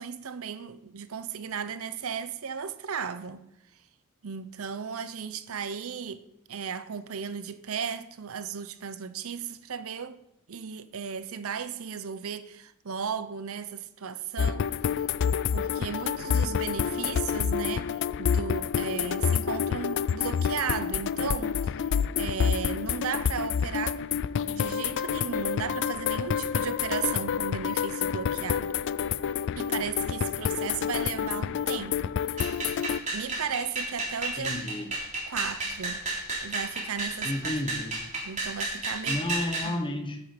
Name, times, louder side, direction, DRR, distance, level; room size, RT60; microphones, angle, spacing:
voice 1, 0.0-3.4 4.2-10.2 10.5-14.7 15.5-21.6 22.2-24.0 24.5-28.8 29.6-32.1 33.0-34.5 35.3-36.0 36.4-37.5 38.2-39.2 39.6-40.1, right 6 dB, 70° right, 0.7 m, -35 dB
sound 1, 14.4-33.0, left 7 dB, 55° left, 0.3 m, -28 dB
sound 2, 32.4-39.7, right 2 dB, 35° right, 3.1 m, -32 dB
voice 2, 34.4-34.9 37.2-38.0 39.0-40.2, left 1 dB, 25° left, 1.3 m, -32 dB
10.0 x 8.7 x 5.2 m
head